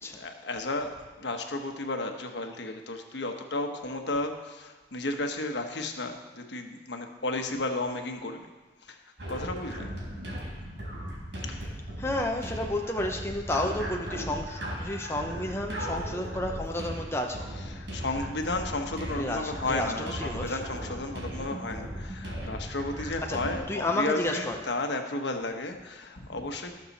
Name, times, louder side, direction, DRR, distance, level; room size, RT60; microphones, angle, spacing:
voice 1, 0.0-8.4 8.8-9.0 9.3-9.9 11.4-11.7 17.4-26.8, left 2 dB, 75° left, 5 dB, 1.2 m, -33 dB
sound 1, 9.2-23.6, equal, 75° right, 4.5 m, -37 dB
voice 2, 12.0-17.5 19.1-20.6 23.3-23.4 23.7-24.6, left 1 dB, 15° left, 2 dB, 0.7 m, -31 dB
19.5 x 6.7 x 4.2 m, 1.3 s
head